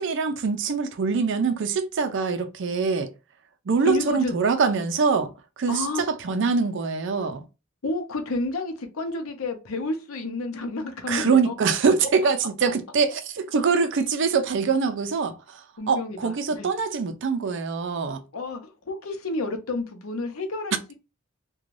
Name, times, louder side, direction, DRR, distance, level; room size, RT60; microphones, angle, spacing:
voice 1, 0.0-3.1 3.7-5.3 5.6-7.4 11.1-18.2, right 5 dB, 60° right, 0.4 m, -24 dB
voice 2, 3.9-4.4 5.7-6.0 7.8-11.5 15.8-16.7 18.3-20.9, left 2 dB, 80° left, 0.7 m, -30 dB
3.1 x 2.2 x 2.5 m
head